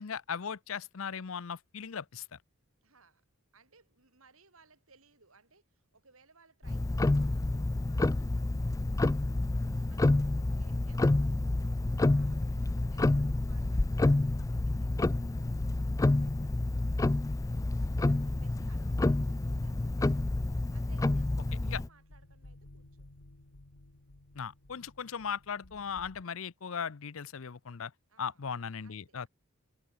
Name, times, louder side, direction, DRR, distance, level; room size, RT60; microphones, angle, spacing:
voice 1, 0.0-2.4 21.7-21.8 24.3-27.9 28.2-29.3, left 6 dB, 70° left, 0.7 m, -38 dB
voice 2, 2.8-3.3 3.5-20.2 20.5-23.1 28.1-28.4 28.8-29.3, right 4 dB, 70° right, 6.6 m, -65 dB
Tick-tock, 6.6-21.9, left 2 dB, 15° left, 0.3 m, -28 dB
sound 1, 14.9-26.2, left 1 dB, 90° left, 1.8 m, -55 dB
head